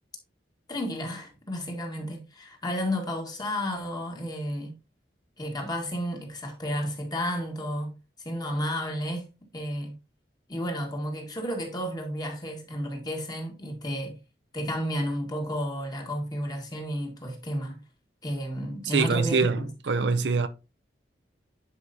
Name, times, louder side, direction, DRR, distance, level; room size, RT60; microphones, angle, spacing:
voice 1, 0.7-4.8 5.4-7.9 8.2-9.3 9.5-10.0 10.5-14.2 14.5-17.8 18.2-19.7, equal, 25° left, 1.7 m, -32 dB
voice 2, 18.9-20.5, right 4 dB, 80° right, 0.6 m, -24 dB
10.0 x 4.9 x 2.7 m
head